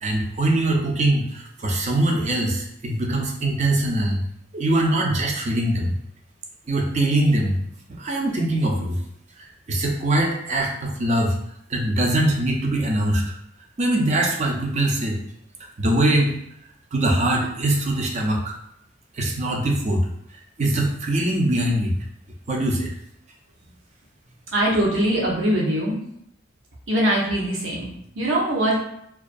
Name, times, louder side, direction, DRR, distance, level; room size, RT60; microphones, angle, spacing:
voice 1, 0.0-4.2 4.5-5.9 6.7-7.6 7.9-9.0 9.4-11.4 11.7-13.2 13.8-15.2 15.8-16.4 16.9-18.5 19.1-20.1 20.6-21.9 22.5-22.9, right 1 dB, 35° right, 0 dB, 0.4 m, -22 dB
voice 2, 24.5-26.0 26.9-28.8, right 1 dB, 75° right, -3 dB, 0.7 m, -22 dB
2.3 x 2.3 x 2.5 m, 0.73 s
head